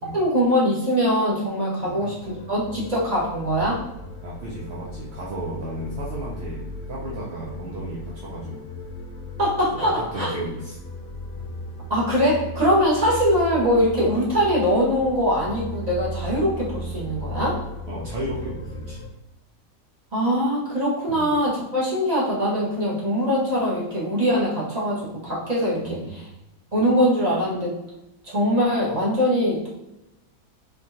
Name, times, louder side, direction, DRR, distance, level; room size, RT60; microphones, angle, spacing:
voice 1, 0.1-3.8 9.4-10.3 11.9-17.6 20.1-26.2 26.7-27.7 28.2-29.7, equal, 25° right, -7 dB, 1.4 m, -22 dB
voice 2, 1.8-2.1 4.2-8.7 9.7-10.8 11.4-11.5 17.9-19.0 21.1-21.3 25.7-26.2, right 1 dB, 60° right, -5 dB, 0.7 m, -34 dB
sound 1, 2.2-19.1, equal, 80° left, 0.4 m, -36 dB
4.2 x 2.9 x 2.8 m, 0.92 s
omnidirectional pair, 1.9 m